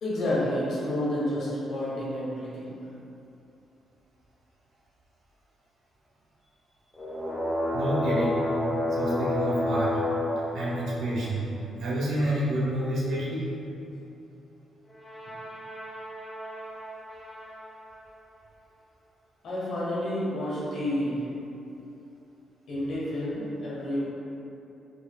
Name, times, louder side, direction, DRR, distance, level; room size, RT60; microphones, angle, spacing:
voice 1, 0.0-2.8 19.4-21.3 22.7-24.0, left 1 dB, 70° left, -8 dB, 1.0 m, -29 dB
sound 1, 6.9-11.5 14.9-17.8, left 1 dB, 15° left, 0.7 m, -31 dB
voice 2, 7.7-8.5 8.9-10.0 10.5-11.5 11.8-13.5, right 1 dB, 75° right, -6 dB, 0.7 m, -28 dB
4.6 x 2.9 x 2.2 m, 2.8 s
cardioid pair, 90°, 0 cm